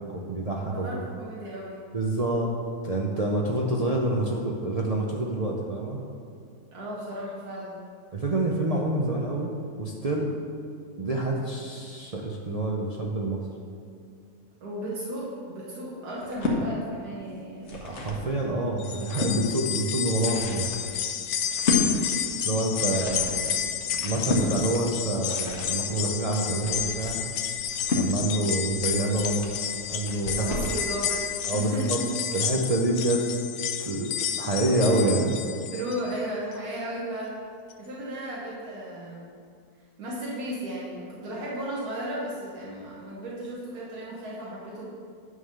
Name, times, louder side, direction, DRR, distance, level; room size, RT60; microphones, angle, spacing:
voice 1, 0.0-1.0 1.9-2.5 2.8-6.0 8.1-9.5 9.8-10.3 11.0-13.4 17.7-20.8 22.4-23.5 24.0-27.2 28.0-30.5 30.7-30.8 31.5-32.0 32.3-33.3 33.8-35.3, right 2 dB, 55° right, -2 dB, 0.4 m, -27 dB
voice 2, 0.6-1.8 6.7-7.7 14.6-17.8 21.7-22.0 30.4-31.2 31.5-32.1 35.7-37.4 37.8-39.3 40.0-44.9, right 1 dB, 80° right, -6 dB, 1.7 m, -35 dB
sound 1, 16.2-16.6 17.4-18.3 18.7-19.4 20.0-30.8, left 2 dB, 50° left, 1.3 m, -32 dB
sound 2, 18.8-36.1 36.5-36.6 37.7-37.8, left 9 dB, 75° left, 1.0 m, -31 dB
9.6 x 3.7 x 6.5 m, 2.3 s
omnidirectional pair, 1.6 m